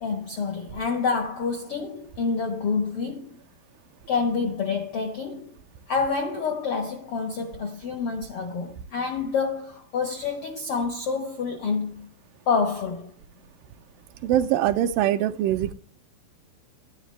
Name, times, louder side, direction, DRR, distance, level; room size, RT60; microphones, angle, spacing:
voice 1, 0.0-3.4 4.1-5.5 5.9-12.1 12.5-13.1, left 5 dB, 70° left, 1.3 m, -28 dB
voice 2, 14.2-15.7, right 11 dB, 80° right, 2.2 m, -23 dB
10.5 x 10.0 x 3.2 m
omnidirectional pair, 4.1 m